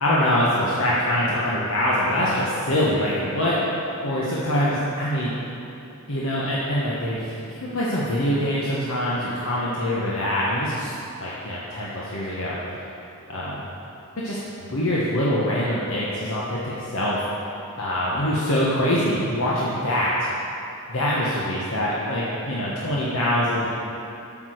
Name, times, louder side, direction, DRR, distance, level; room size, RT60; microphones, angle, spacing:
voice 1, 0.0-3.6 4.0-5.3 6.1-10.9 11.2-12.6 13.3-13.7 14.2-17.2 17.8-20.3 20.9-23.7, left 1 dB, 65° left, -7 dB, 1.2 m, -24 dB
8.9 x 6.0 x 6.5 m, 2.9 s
head